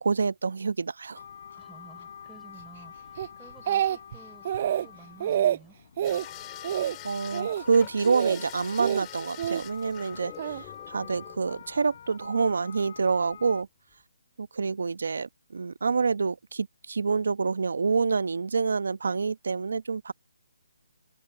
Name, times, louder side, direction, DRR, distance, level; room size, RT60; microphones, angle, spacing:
voice 1, 0.0-1.2 7.0-13.7 14.4-20.1, right 5 dB, 70° right, 1.0 m, -27 dB
sound 1, 1.1-13.6, left 8 dB, 50° left, 6.0 m, -46 dB
voice 2, 1.5-4.5 4.8-5.8, right 4 dB, 5° right, 6.3 m, -53 dB
Speech, 3.2-4.2 4.4-4.9 5.2-5.6 6.0-6.2 6.6-7.0 7.3-7.6 8.0-8.4 8.8-9.6 10.4-10.6, right 10 dB, 40° right, 0.5 m, -27 dB
sound 2, 6.0-12.0 13.3-13.6 13.9-14.0, left 23 dB, 20° left, 4.8 m, -47 dB
figure-of-eight pair, 150°, 0 cm